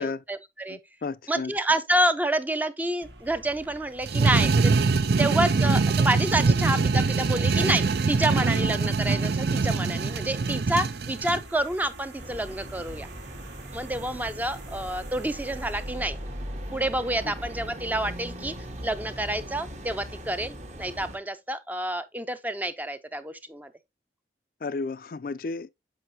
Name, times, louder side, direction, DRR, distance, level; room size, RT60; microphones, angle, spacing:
voice 1, 0.0-0.8 1.3-4.7 5.2-13.1 13.7-16.2 16.7-18.5 18.8-23.7, right 1 dB, 10° right, 0.5 m, -28 dB
voice 2, 0.7-1.5 17.3-17.4 24.6-25.7, left 4 dB, 50° left, 0.4 m, -33 dB
sound 1, 3.0-17.2, right 2 dB, 85° right, 1.6 m, -47 dB
sound 2, 4.0-11.4, right 4 dB, 65° right, 0.5 m, -23 dB
sound 3, 12.2-21.2, equal, 40° right, 1.2 m, -39 dB
7.8 x 5.5 x 2.7 m
head